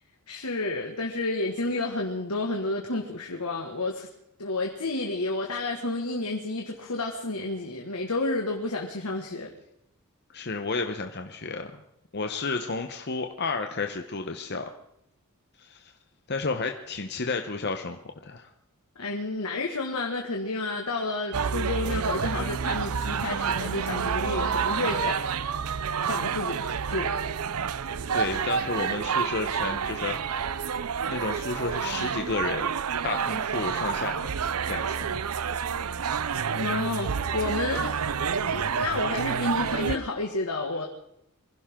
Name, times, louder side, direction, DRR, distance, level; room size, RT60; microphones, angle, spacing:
voice 1, 0.3-4.1 4.4-9.5 19.0-25.6 26.0-26.6 26.9-27.1 36.5-38.1 38.4-40.9, left 2 dB, 90° left, 0 dB, 1.9 m, -30 dB
voice 2, 10.3-11.8 12.1-14.7 15.6-15.9 16.3-18.5 28.1-30.6 31.1-32.7 33.0-34.3 34.7-35.2, left 3 dB, 50° left, 5 dB, 1.0 m, -32 dB
sound 1, 21.3-40.0, right 6 dB, 85° right, 0.6 m, -29 dB
24.0 x 16.0 x 3.8 m, 0.79 s
head